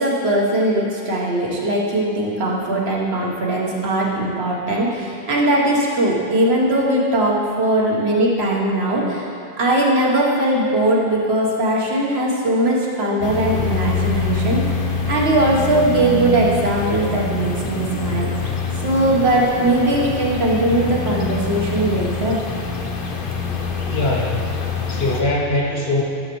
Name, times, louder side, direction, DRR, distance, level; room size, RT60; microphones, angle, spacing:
voice 1, 0.0-14.8 15.1-18.5 18.8-22.4 24.9-25.0, right 1 dB, 80° right, -3 dB, 1.4 m, -20 dB
sound 1, 13.2-25.2, left 3 dB, 60° left, 0.9 m, -25 dB
voice 2, 23.9-24.6 24.9-26.0, left 2 dB, 80° left, -3 dB, 1.5 m, -21 dB
11.5 x 6.1 x 3.1 m, 2.6 s
omnidirectional pair, 1.0 m